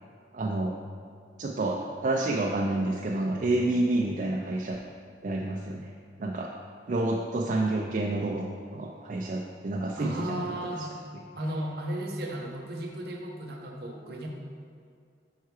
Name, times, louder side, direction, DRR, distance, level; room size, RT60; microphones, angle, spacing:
voice 1, 0.3-0.7 1.4-4.8 5.2-5.9 6.2-6.5 6.9-8.5 8.7-10.5 10.8-10.9, right 2 dB, 45° right, -1 dB, 0.4 m, -29 dB
voice 2, 10.0-10.9 11.4-14.3, right 1 dB, 60° right, 1 dB, 0.9 m, -34 dB
5.6 x 4.7 x 4.7 m, 2.3 s
head